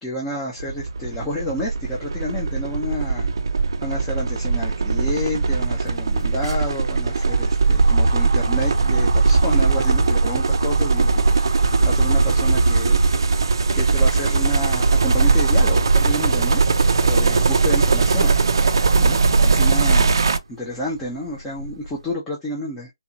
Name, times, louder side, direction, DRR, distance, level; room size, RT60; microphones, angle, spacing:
voice 1, 0.0-3.3 3.8-13.0 13.7-16.6 17.0-18.4 19.0-20.2 20.5-22.9, left 1 dB, 10° left, 0.8 m, -30 dB
sound 1, 0.6-20.4, right 4 dB, 65° right, 0.6 m, -21 dB
sound 2, 5.1-5.2 5.5-13.3 13.8-20.3 20.8-21.9, right 2 dB, 90° right, 0.9 m, -22 dB
4.3 x 2.4 x 2.7 m
hypercardioid pair, 170°, 3 cm